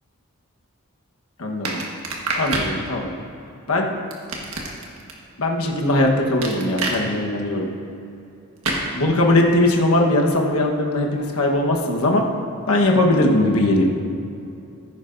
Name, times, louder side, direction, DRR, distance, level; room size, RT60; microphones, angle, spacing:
voice 1, 1.4-1.8 2.4-3.1 3.7-3.9 5.4-7.7 8.9-12.2 12.7-13.8, left 1 dB, 70° left, 0 dB, 1.3 m, -19 dB
sound 1, 1.6-2.7 4.1-5.1 6.4-7.0 8.6-8.9, right 3 dB, 70° right, 1.4 m, -26 dB
14.5 x 10.0 x 2.6 m, 2.7 s
head